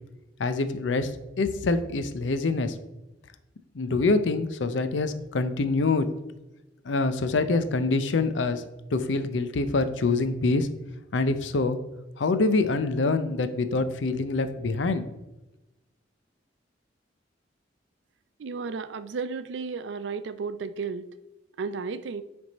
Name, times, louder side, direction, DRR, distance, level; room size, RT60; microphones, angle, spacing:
voice 1, 0.4-1.1 1.4-2.8 3.7-6.1 6.8-8.6 8.9-10.7 11.1-11.8 12.2-15.1, left 3 dB, 90° left, 11 dB, 0.6 m, -25 dB
voice 2, 18.4-21.1 21.6-22.2, right 5 dB, 75° right, 13 dB, 0.4 m, -33 dB
9.3 x 3.5 x 4.0 m, 1.0 s
head